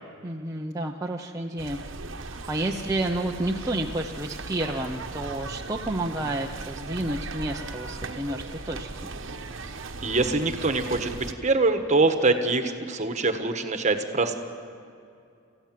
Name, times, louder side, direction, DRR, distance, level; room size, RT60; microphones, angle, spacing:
voice 1, 0.2-1.8 2.3-9.1, right 1 dB, 15° right, 0 dB, 0.8 m, -30 dB
sound 1, 1.6-11.3, right 3 dB, 70° right, 1.2 m, -38 dB
voice 2, 10.0-14.4, right 3 dB, 35° right, 7 dB, 1.4 m, -24 dB
28.5 x 15.0 x 7.6 m, 2.5 s
head